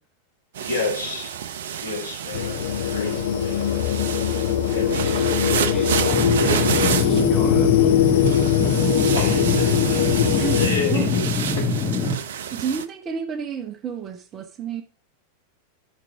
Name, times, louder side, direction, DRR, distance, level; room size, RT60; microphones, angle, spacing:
sound 1, 0.5-12.8, right 8 dB, 60° right, 0.6 m, -30 dB
voice 1, 0.6-1.4 1.8-2.6 2.9-3.7 4.6-5.0 9.1-11.3 11.5-11.7, left 4 dB, 85° left, -3 dB, 3.2 m, -30 dB
sound 2, 2.3-10.7, left 9 dB, 55° left, 0.7 m, -21 dB
voice 2, 4.7-8.9, equal, ahead, -3 dB, 3.5 m, -34 dB
sound 3, 6.1-12.1, left 3 dB, 20° left, 2.2 m, -24 dB
voice 3, 10.4-11.1 12.5-14.8, right 7 dB, 25° right, 9 dB, 0.9 m, -30 dB
11.0 x 4.7 x 4.8 m, 0.40 s
figure-of-eight pair, 90°, 0 cm